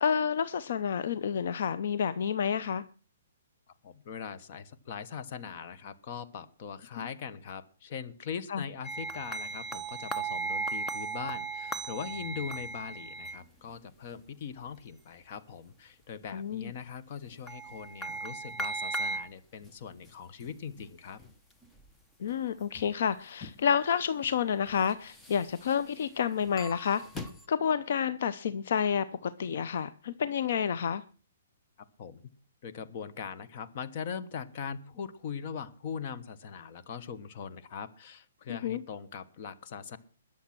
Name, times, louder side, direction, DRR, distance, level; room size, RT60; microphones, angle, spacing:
voice 1, 0.0-2.8 7.0-7.1 8.5-8.6 16.3-16.7 22.2-31.0 38.5-38.8, left 7 dB, 60° left, 14 dB, 0.7 m, -30 dB
voice 2, 3.8-21.2 32.0-32.2 32.6-40.0, left 7 dB, 40° left, 12 dB, 1.3 m, -41 dB
sound 1, 8.8-13.4 17.3-19.3 19.6-19.7 20.1-20.2 20.4-20.5 20.8-20.9 21.2-21.3 21.6-21.9 22.3-22.4 22.7-22.9 23.4-23.5 24.2-24.3 24.7-25.7 26.4-27.4, right 3 dB, 5° left, 1.0 m, -37 dB
21.0 x 7.2 x 6.1 m, 0.39 s
hypercardioid pair, 165°, 0 cm